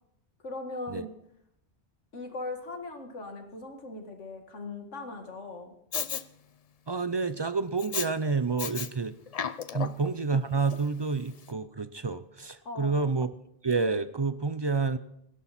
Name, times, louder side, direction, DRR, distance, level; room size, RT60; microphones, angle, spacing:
voice 1, 0.4-1.1 2.1-5.7 9.7-9.9 12.6-13.0, left 2 dB, 85° left, 5 dB, 2.2 m, -39 dB
Respiratory sounds, 5.9-6.2 7.8-8.1 8.6-8.9 9.3-10.1 10.7-10.8, left 7 dB, 45° left, 0.5 m, -33 dB
voice 2, 6.9-9.1 9.7-13.3 13.6-15.0, right 4 dB, 45° right, 13 dB, 0.3 m, -29 dB
17.0 x 12.0 x 4.2 m, 0.76 s
omnidirectional pair, 1.2 m